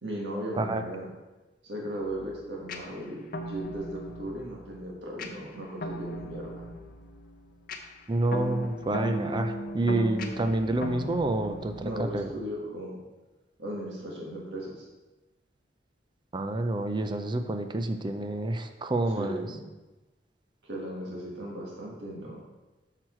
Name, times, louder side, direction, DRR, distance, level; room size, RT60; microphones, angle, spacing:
voice 1, 0.0-1.1 1.6-6.6 11.8-13.0 13.6-14.8 19.1-19.7 20.6-22.4, equal, 70° right, -3 dB, 1.7 m, -37 dB
sound 1, 2.0-12.6, equal, 55° left, 0.7 m, -38 dB
voice 2, 8.1-11.7 12.0-12.3 16.3-19.4, right 2 dB, 25° right, 7 dB, 0.5 m, -28 dB
6.3 x 5.9 x 4.5 m, 1.1 s
head